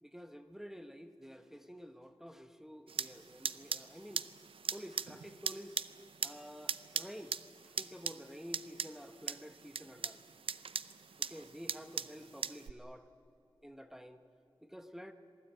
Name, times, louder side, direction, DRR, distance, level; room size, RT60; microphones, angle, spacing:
voice 1, 0.0-4.2 4.7-5.8 6.2-7.4 7.6-10.2 11.2-13.1 13.6-14.2 14.6-15.1, equal, 5° right, 7 dB, 1.0 m, -50 dB
sound 1, 2.9-12.7, right 6 dB, 80° right, 0.6 m, -41 dB
26.5 x 18.5 x 8.9 m, 2.6 s
wide cardioid pair, 85°, 9 cm